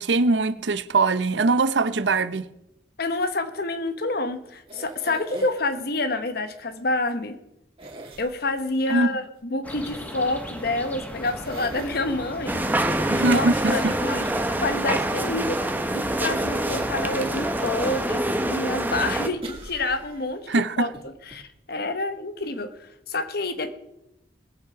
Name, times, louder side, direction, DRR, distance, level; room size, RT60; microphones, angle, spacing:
voice 1, 0.0-2.5 8.9-9.1 13.1-13.9 20.5-20.9, right 3 dB, 90° right, 0.7 m, -22 dB
voice 2, 3.0-7.4 8.2-12.6 12.9-14.3 14.6-20.9 21.3-23.8, left 2 dB, 60° left, 1.1 m, -28 dB
sound 1, 4.7-5.8 7.8-8.7 10.7-10.8 11.2-12.0 16.3-17.4 17.9-18.0 19.4-20.4 20.9-21.0 21.3-21.4, right 1 dB, 35° right, 2.3 m, -39 dB
sound 2, 9.6-18.3, equal, 10° left, 1.8 m, -38 dB
sound 3, 12.5-19.3, right 1 dB, 10° right, 0.8 m, -26 dB
19.5 x 8.0 x 5.0 m
head